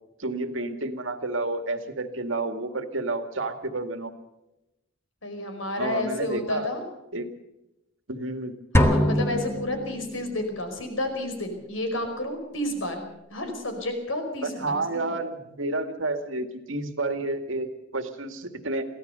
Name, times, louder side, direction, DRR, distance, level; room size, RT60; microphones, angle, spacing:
voice 1, 0.2-4.1 5.8-6.7 7.1-7.3 8.1-8.6 14.4-18.9, right 2 dB, 75° right, 8 dB, 2.1 m, -30 dB
voice 2, 5.2-6.8 8.7-15.2, left 1 dB, 75° left, 5 dB, 5.0 m, -31 dB
sound 1, 8.7-10.4, left 1 dB, 15° left, 1.6 m, -23 dB
23.5 x 16.5 x 6.8 m, 0.91 s
head